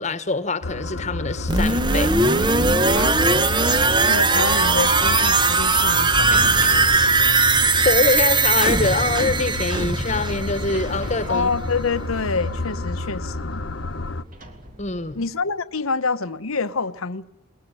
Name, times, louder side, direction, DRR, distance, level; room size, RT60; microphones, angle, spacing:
voice 1, 0.0-2.1 7.8-11.5 14.8-15.2, left 3 dB, 35° left, 1.3 m, -24 dB
sound 1, 0.6-14.2, left 2 dB, 60° left, 1.1 m, -30 dB
sound 2, 1.5-11.2 11.5-11.6, right 3 dB, 20° right, 0.9 m, -19 dB
voice 2, 2.9-3.4 4.0-6.9 11.3-13.6 15.1-17.2, left 4 dB, 80° left, 1.0 m, -27 dB
sound 3, 4.5-15.3, right 1 dB, 40° right, 2.8 m, -39 dB
21.0 x 21.0 x 9.8 m
head